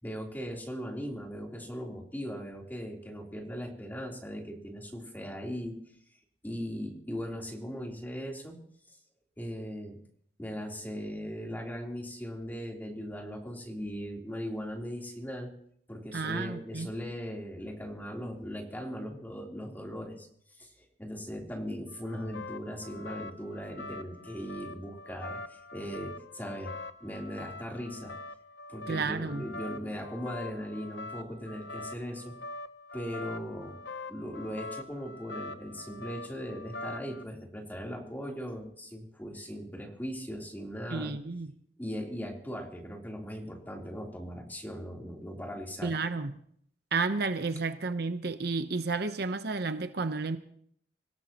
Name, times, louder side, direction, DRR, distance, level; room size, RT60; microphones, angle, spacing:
voice 1, 0.0-5.8 6.4-8.6 9.4-10.0 10.4-15.5 15.9-20.3 20.6-26.7 27.0-28.1 28.7-32.3 32.9-33.8 34.1-41.1 41.8-46.0, equal, 10° left, 3.5 m, -39 dB
voice 2, 16.1-16.9 28.9-29.4 40.9-41.5 45.8-46.3 46.9-50.4, right 4 dB, 65° right, 0.9 m, -31 dB
sound 1, 21.9-37.2, left 2 dB, 90° left, 0.9 m, -44 dB
26.0 x 17.0 x 3.0 m
head